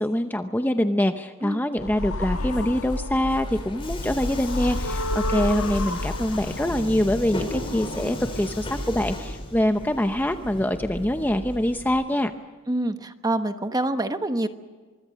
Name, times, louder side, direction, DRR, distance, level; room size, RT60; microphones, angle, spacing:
voice 1, 0.0-12.3, left 1 dB, 10° left, 7 dB, 0.7 m, -24 dB
sound 1, 1.8-7.1, left 2 dB, 65° left, 0.9 m, -31 dB
sound 2, 2.2-3.3 3.8-9.1, left 1 dB, 85° left, 1.6 m, -36 dB
Subway metro underground, 3.1-11.9, left 1 dB, 25° left, 5.3 m, -35 dB
voice 2, 12.7-14.5, right 1 dB, 15° right, 8 dB, 1.1 m, -26 dB
24.5 x 23.5 x 6.4 m, 1.4 s
head